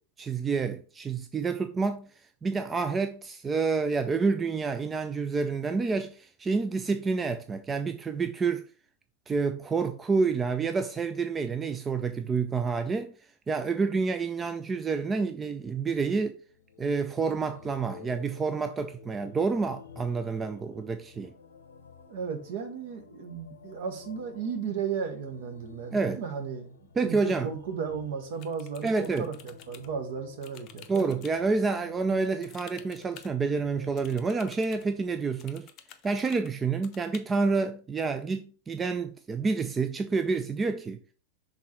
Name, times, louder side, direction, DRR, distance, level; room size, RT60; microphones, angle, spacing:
voice 1, 0.2-2.1 2.4-8.6 9.3-13.1 13.5-16.4 16.8-21.3 25.9-26.2 27.0-27.5 28.8-29.3 30.9-35.7 36.0-41.0, right 4 dB, 20° right, 0.4 m, -28 dB
sound 1, 16.4-35.2, left 6 dB, 70° left, 0.8 m, -52 dB
voice 2, 22.1-31.0, right 6 dB, 55° right, 1.2 m, -35 dB
sound 2, 28.3-29.9 30.4-31.4 32.4-33.3 34.0-34.8 35.4-36.5 36.8-37.2, left 10 dB, 40° left, 0.6 m, -51 dB
6.0 x 3.8 x 4.3 m
figure-of-eight pair, 90°, 0 cm